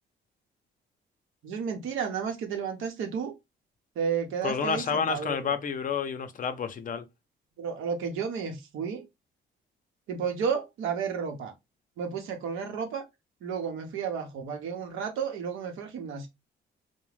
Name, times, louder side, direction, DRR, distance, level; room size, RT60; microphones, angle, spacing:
voice 1, 1.4-3.3 4.0-5.5 7.6-9.0 10.1-11.5 12.0-13.0 13.4-16.3, right 6 dB, 85° right, 0.7 m, -32 dB
voice 2, 4.4-7.0, left 6 dB, 45° left, 0.5 m, -29 dB
2.4 x 2.1 x 3.2 m
cardioid pair, 90°, 20 cm